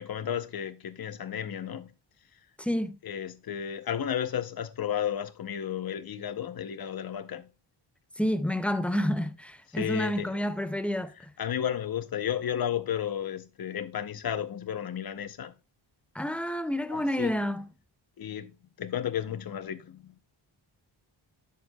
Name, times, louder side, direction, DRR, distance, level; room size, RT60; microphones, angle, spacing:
voice 1, 0.0-1.9 3.0-7.5 9.7-10.4 11.2-15.5 16.9-17.4 18.2-18.5 18.8-20.2, left 9 dB, 50° left, 0.7 m, -33 dB
voice 2, 2.6-3.0 8.2-11.3 16.1-17.7, equal, 5° left, 0.3 m, -29 dB
10.5 x 6.5 x 2.2 m
wide cardioid pair, 165°, 47 cm